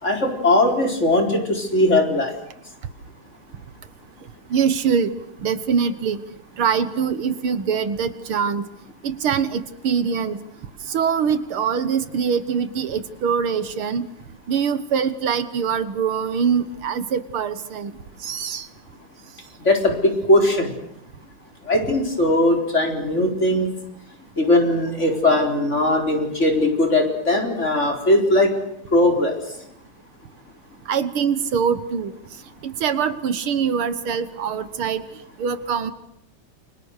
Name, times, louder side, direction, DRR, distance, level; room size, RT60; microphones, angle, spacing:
voice 1, 0.0-2.3 19.6-20.7 21.7-23.7 24.4-28.5 28.9-29.4, left 1 dB, 30° left, 4 dB, 4.5 m, -19 dB
voice 2, 4.5-5.1 5.4-6.2 6.6-8.6 9.0-10.4 10.9-14.1 14.5-17.9 18.2-18.7 30.9-32.1 32.6-35.0 35.4-35.9, right 7 dB, 75° right, 13 dB, 2.2 m, -23 dB
29.5 x 24.5 x 6.6 m, 0.74 s
omnidirectional pair, 2.4 m